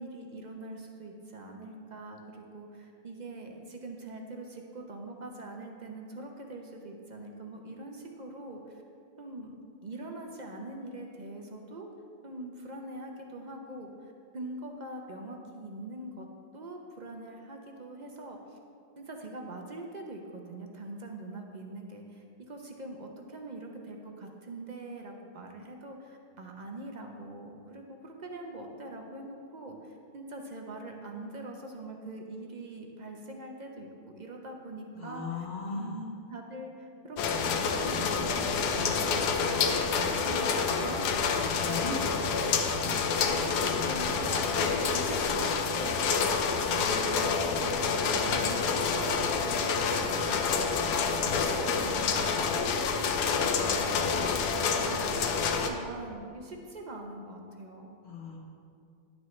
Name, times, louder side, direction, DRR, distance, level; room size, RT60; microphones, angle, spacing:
voice 1, 0.0-8.8 9.2-9.5 9.8-11.9 12.2-16.3 16.5-18.6 19.0-35.5 35.7-41.4 41.7-42.5 42.8-46.2 46.7-49.7 50.0-58.0, right 2 dB, 50° right, 2 dB, 0.5 m, -43 dB
voice 2, 34.9-35.9 41.5-41.9 58.0-58.4, left 4 dB, 45° left, -3 dB, 1.1 m, -37 dB
sound 1, 37.2-55.7, left 5 dB, 85° left, 1.2 m, -28 dB
11.0 x 8.0 x 3.1 m, 2.4 s
omnidirectional pair, 1.7 m